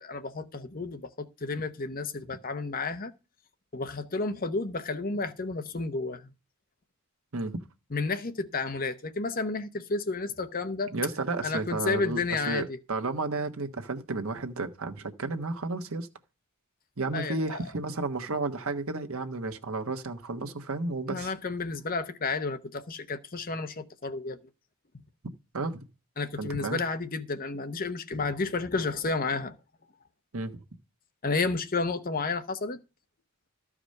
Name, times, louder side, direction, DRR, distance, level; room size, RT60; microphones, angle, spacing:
voice 1, 0.0-3.1 3.7-6.3 7.9-10.9 11.4-12.8 17.1-17.6 21.1-24.4 26.2-29.5 31.2-32.8, left 3 dB, 40° left, 0.9 m, -31 dB
voice 2, 10.9-16.1 17.0-21.3 25.5-25.9 26.4-26.8 28.1-28.2 30.3-30.6, right 3 dB, 70° right, 1.2 m, -32 dB
13.0 x 4.9 x 6.5 m
head